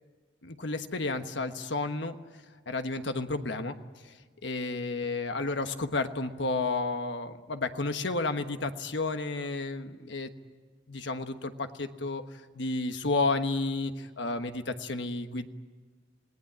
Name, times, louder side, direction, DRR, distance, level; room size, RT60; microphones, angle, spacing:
voice 1, 0.4-2.1 2.7-3.7 4.0-4.1 4.4-10.3 10.9-15.5, left 3 dB, 70° left, 8 dB, 1.3 m, -31 dB
27.5 x 19.0 x 8.8 m, 1.5 s
head